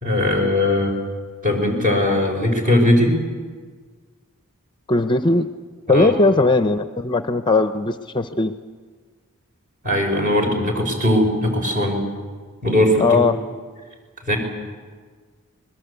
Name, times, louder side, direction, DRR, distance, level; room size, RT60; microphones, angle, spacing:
voice 1, 0.0-0.9 1.4-3.2 5.9-6.1 9.8-12.0 12.6-13.2 14.3-14.4, left 1 dB, 40° right, 3 dB, 5.0 m, -19 dB
voice 2, 4.9-5.5 5.9-8.5 13.0-13.4, left 3 dB, 20° left, 10 dB, 0.6 m, -18 dB
24.5 x 21.0 x 8.2 m, 1.5 s
head